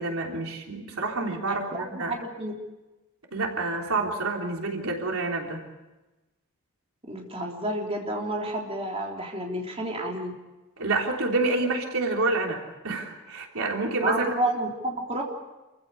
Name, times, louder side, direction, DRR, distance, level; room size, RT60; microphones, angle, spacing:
voice 1, 0.0-2.2 3.3-5.7 10.8-14.3, right 3 dB, 85° right, 1 dB, 3.5 m, -28 dB
voice 2, 1.4-2.5 7.1-10.3 14.0-15.2, right 1 dB, 30° right, -1 dB, 3.5 m, -30 dB
28.0 x 15.5 x 8.5 m, 1.1 s
head